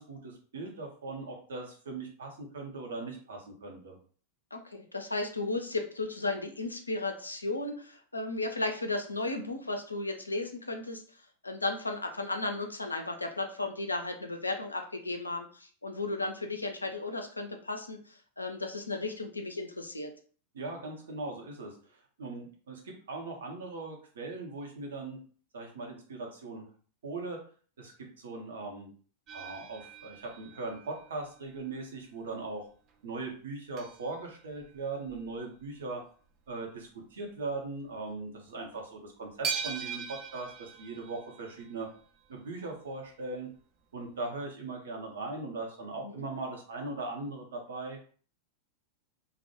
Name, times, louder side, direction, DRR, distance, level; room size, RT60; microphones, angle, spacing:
voice 1, 0.0-4.0 20.5-25.2 25.5-26.7 27.0-27.4 27.8-28.9 29.3-32.6 33.0-36.0 36.5-41.9 42.3-43.5 43.9-48.0, right 3 dB, 65° right, 1 dB, 0.7 m, -39 dB
voice 2, 4.5-11.0 11.4-20.1 46.0-46.2, left 2 dB, 80° left, 5 dB, 0.4 m, -34 dB
sound 1, 29.3-31.8 32.2-32.4 32.9-33.0 33.2-33.3 33.8-35.8 36.2-36.5 36.8-36.9 37.5-37.7 38.1-38.2 39.4-42.4 43.6-43.7 44.0-44.1, right 6 dB, 35° right, 0.4 m, -42 dB
2.1 x 2.0 x 2.9 m, 0.43 s
figure-of-eight pair, 90°, 0 cm